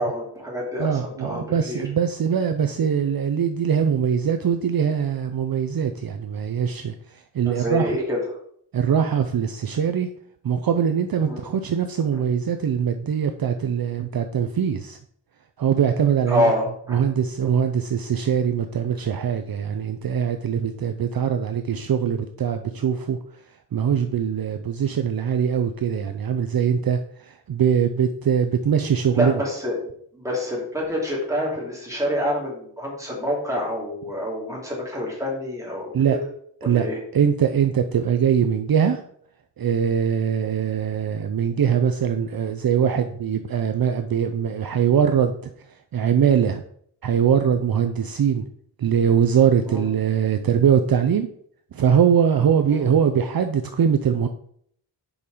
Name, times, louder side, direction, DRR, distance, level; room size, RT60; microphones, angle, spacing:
voice 1, 0.0-1.8 7.5-8.2 11.3-11.4 12.1-12.2 16.3-17.0 29.1-29.8 30.1-35.9 36.6-37.0 49.7-49.9 52.7-52.9, left 1 dB, 5° right, -4 dB, 3.1 m, -27 dB
voice 2, 0.8-6.9 7.3-8.0 8.7-10.1 10.4-15.0 15.6-16.5 16.9-23.2 23.7-27.0 27.3-29.3 35.9-36.2 36.6-36.9 37.1-39.0 39.6-45.3 45.9-46.6 47.0-48.4 48.8-51.3 51.7-54.3, right 8 dB, 55° right, 7 dB, 0.6 m, -22 dB
7.0 x 5.5 x 5.0 m, 0.63 s
wide cardioid pair, 155°, 42 cm